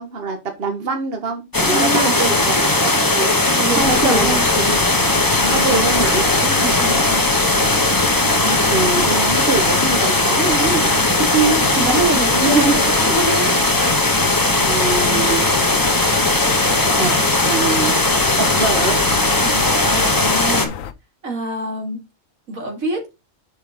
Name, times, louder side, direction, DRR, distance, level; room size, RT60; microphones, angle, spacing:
voice 1, 0.0-3.3 3.8-4.8 5.5-6.3 8.4-11.0 12.3-12.8 13.3-13.6 14.5-15.5 17.0-17.1 17.4-18.0 18.4-19.0, right 4 dB, 45° right, 1.5 m, -24 dB
sound 1, 1.5-20.7, left 2 dB, 15° left, 1.1 m, -18 dB
voice 2, 1.6-2.4 3.5-4.5 5.4-7.2 11.2-13.5 19.4-20.7 21.2-22.0 22.5-23.0, right 2 dB, 90° right, 2.9 m, -24 dB
sound 2, 3.8-20.9, left 8 dB, 75° left, 1.1 m, -30 dB
6.4 x 5.1 x 5.2 m
omnidirectional pair, 1.4 m